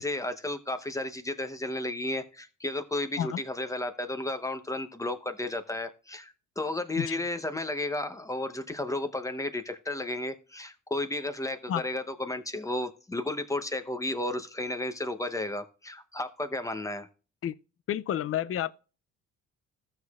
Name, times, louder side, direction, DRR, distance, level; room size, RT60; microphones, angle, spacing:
voice 1, 0.0-17.1, left 2 dB, 10° left, 0.8 m, -33 dB
voice 2, 17.9-18.7, left 10 dB, 50° left, 0.5 m, -30 dB
14.0 x 6.5 x 2.4 m
cardioid pair, 90°, 30 cm